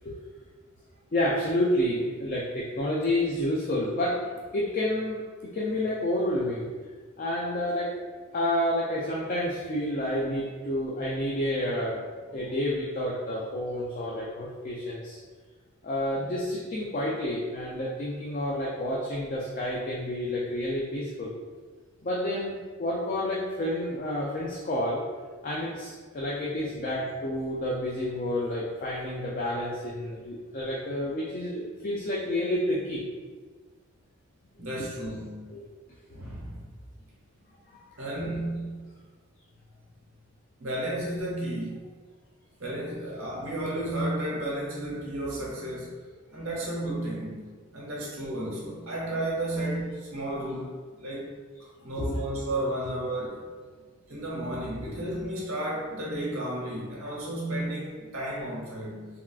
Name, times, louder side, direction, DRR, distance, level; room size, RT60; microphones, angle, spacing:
voice 1, 1.1-4.2 4.5-6.7 7.2-7.9 8.3-12.0 12.3-15.2 15.8-21.3 22.0-25.0 25.4-33.0 35.5-35.6 37.9-38.1 46.3-46.4 51.8-52.2, left 1 dB, 40° left, -4 dB, 0.3 m, -29 dB
voice 2, 34.6-35.5 36.1-36.6 38.0-38.9 40.6-41.8 42.6-46.0 46.3-47.4 47.7-51.2 51.6-53.5 54.1-59.1, right 1 dB, 85° right, -5 dB, 0.9 m, -33 dB
3.5 x 2.3 x 2.3 m, 1.4 s
head